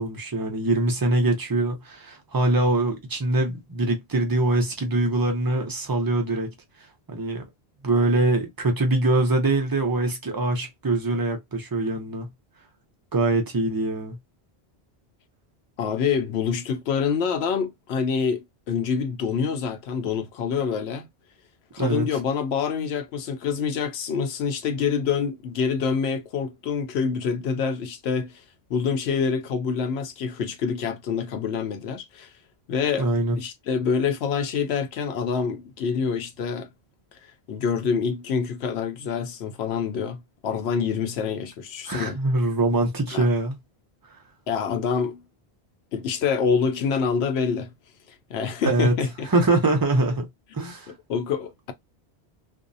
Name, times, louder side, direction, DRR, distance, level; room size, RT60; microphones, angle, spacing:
voice 1, 0.0-6.5 7.1-7.4 7.8-12.3 13.1-14.2 21.8-22.1 33.0-33.4 41.9-43.6 48.6-48.9 49.3-50.3 50.5-50.9, right 2 dB, 30° right, 0.5 m, -23 dB
voice 2, 15.8-21.1 21.7-28.3 28.7-32.3 32.7-33.1 33.4-36.7 37.5-42.2 43.1-43.3 44.5-45.2 45.9-47.7 48.3-49.3 50.9-51.7, left 6 dB, 80° left, 0.8 m, -26 dB
2.5 x 2.0 x 2.6 m
omnidirectional pair, 1.1 m